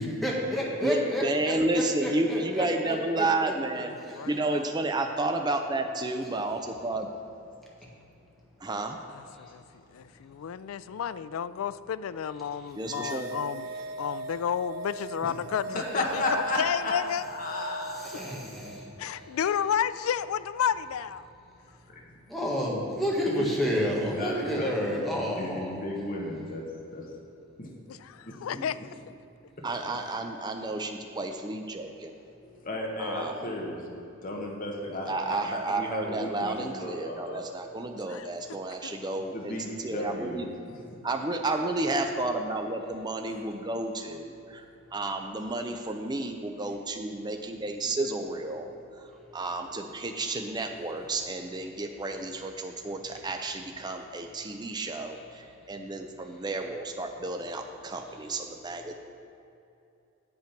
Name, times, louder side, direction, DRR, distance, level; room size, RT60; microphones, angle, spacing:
voice 1, 0.0-3.5 4.1-4.3 18.0-18.9 19.2-19.4 22.3-25.8, equal, ahead, 1.5 m, -30 dB
voice 2, 0.8-3.9 4.3-7.1 8.6-9.0 12.8-13.3 29.6-32.1 33.0-33.4 35.1-39.6 39.8-40.5 41.0-44.6 44.9-48.7 49.3-58.9, right 2 dB, 20° right, 0.5 m, -31 dB
voice 3, 4.2-4.6 9.1-13.7 14.0-16.2 16.6-17.3 19.0-21.3 27.9-28.8 38.1-38.3 38.8-39.0, left 8 dB, 80° left, 0.3 m, -31 dB
sound 1, 12.8-19.4, right 2 dB, 70° right, 0.5 m, -40 dB
voice 4, 15.7-16.9 17.3-18.3 21.9-22.0 23.3-23.5 24.0-25.0 25.4-26.6 26.9-27.1 27.6-27.7 28.3-28.6 32.4-33.9 34.2-37.4 39.3-40.8 43.3-43.4, left 1 dB, 40° left, 1.2 m, -34 dB
8.8 x 7.5 x 5.8 m
head